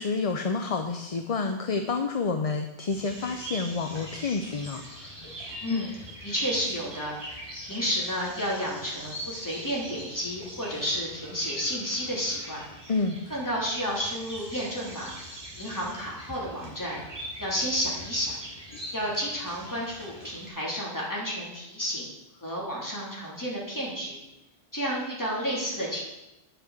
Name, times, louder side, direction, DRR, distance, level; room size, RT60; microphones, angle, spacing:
voice 1, 0.0-5.1 5.7-5.8 12.9-13.2, left 4 dB, 40° left, 5 dB, 0.7 m, -29 dB
sound 1, 2.9-20.5, right 1 dB, 25° right, 3.8 m, -43 dB
voice 2, 5.6-5.9 6.2-12.6 13.3-15.1 15.5-17.0 17.4-18.4 18.9-22.1 22.4-24.2 24.7-26.0, equal, 20° left, -5 dB, 3.4 m, -31 dB
10.0 x 6.8 x 7.3 m, 0.94 s
omnidirectional pair, 1.1 m